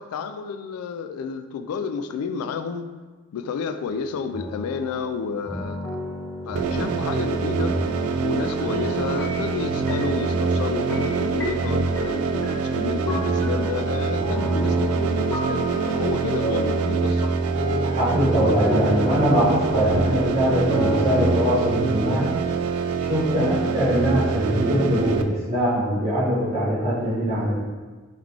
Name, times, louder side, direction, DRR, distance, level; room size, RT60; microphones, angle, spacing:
voice 1, 0.0-2.9 3.3-6.0 6.4-7.7 8.2-15.7 15.9-17.4 23.4-23.5, left 5 dB, 85° left, 9 dB, 0.3 m, -30 dB
sound 1, 3.9-21.7, left 1 dB, 10° left, 0.4 m, -33 dB
sound 2, 6.5-25.2, right 4 dB, 80° right, 0.3 m, -25 dB
voice 2, 17.8-22.3 23.0-27.5, equal, 30° right, -10 dB, 1.4 m, -22 dB
3.7 x 3.2 x 3.5 m, 1.3 s
head